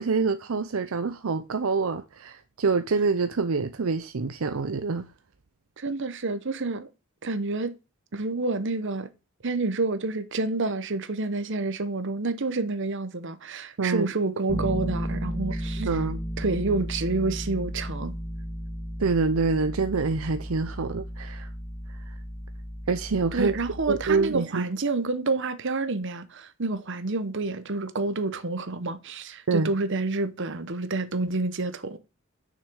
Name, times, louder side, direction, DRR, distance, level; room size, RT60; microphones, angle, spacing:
voice 1, 0.0-5.1 13.8-14.1 15.5-16.2 19.0-21.5 22.1-22.2 22.9-23.5 23.9-24.7 29.5-29.7, right 4 dB, 80° right, 0.6 m, -26 dB
voice 2, 5.8-6.9 7.2-7.7 8.1-9.1 9.4-15.9 16.4-18.1 23.3-32.0, right 3 dB, 60° right, 1.0 m, -28 dB
Bass guitar, 14.5-24.4, equal, 25° left, 1.4 m, -34 dB
6.7 x 6.4 x 6.3 m
head